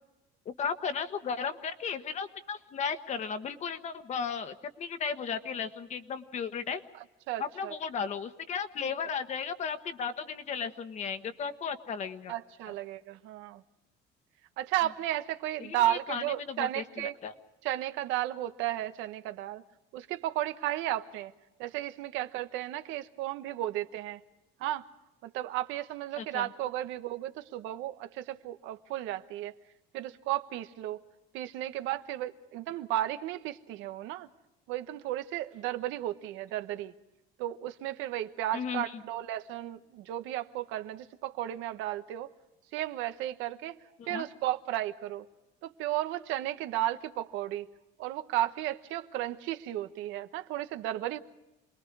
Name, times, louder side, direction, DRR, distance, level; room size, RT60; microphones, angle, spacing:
voice 1, 0.4-6.8 7.4-12.3 15.6-17.3 26.2-26.5 38.5-38.8 44.0-44.3, left 6 dB, 35° left, 9 dB, 1.3 m, -35 dB
voice 2, 7.3-7.8 12.3-13.6 14.6-17.1 17.6-19.6 19.9-21.3 21.6-24.2 24.6-24.9 25.2-29.5 29.9-31.0 31.3-34.3 34.7-36.9 37.4-42.3 42.7-43.8 44.1-45.3 45.6-47.7 48.0-51.2, right 13 dB, 85° right, 9 dB, 1.2 m, -34 dB
28.0 x 21.0 x 4.8 m, 0.97 s
cardioid pair, 160°, 20 cm